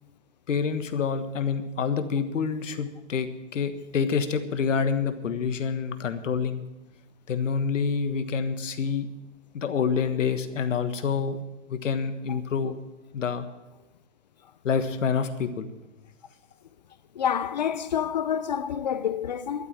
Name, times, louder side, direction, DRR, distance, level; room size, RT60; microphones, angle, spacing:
voice 1, 0.5-6.6 7.3-9.1 9.5-11.4 11.7-12.8 13.1-13.4 14.6-15.7, left 6 dB, 90° left, 1.5 m, -27 dB
voice 2, 17.2-19.7, left 8 dB, 40° left, 0.4 m, -28 dB
12.5 x 8.2 x 8.8 m
hypercardioid pair, 160°, 37 cm